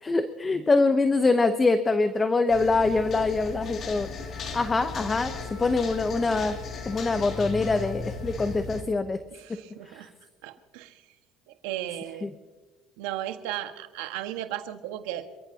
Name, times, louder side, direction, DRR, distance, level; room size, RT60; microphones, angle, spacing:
voice 1, 0.0-4.1 4.5-5.3 5.6-6.6 6.9-9.2 9.9-10.0 12.2-12.3, left 3 dB, 20° left, 9 dB, 0.9 m, -24 dB
sound 1, 2.5-8.8, left 4 dB, 40° left, 2.5 m, -37 dB
Wind instrument woodwind instrument, 4.1-8.5, left 1 dB, 70° left, 2.5 m, -46 dB
voice 2, 9.3-10.1 10.4-11.0 11.5-12.3 13.0-15.2, right 13 dB, 85° right, 7 dB, 1.5 m, -35 dB
28.5 x 14.5 x 2.9 m, 1.3 s
cardioid pair, 120°, 0 cm